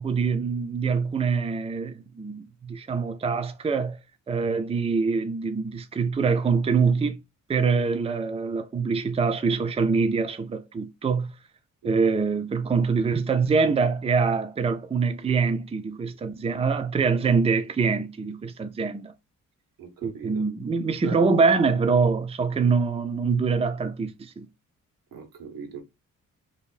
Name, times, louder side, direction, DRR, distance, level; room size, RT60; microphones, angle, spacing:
voice 1, 0.0-4.0 4.3-7.2 7.5-11.3 11.8-19.1 20.0-24.5, right 5 dB, 20° right, 0.5 m, -24 dB
voice 2, 19.8-20.5 21.0-21.3 25.1-25.8, right 6 dB, 85° right, 1.2 m, -39 dB
2.8 x 2.6 x 3.8 m
cardioid pair, 95°, 33 cm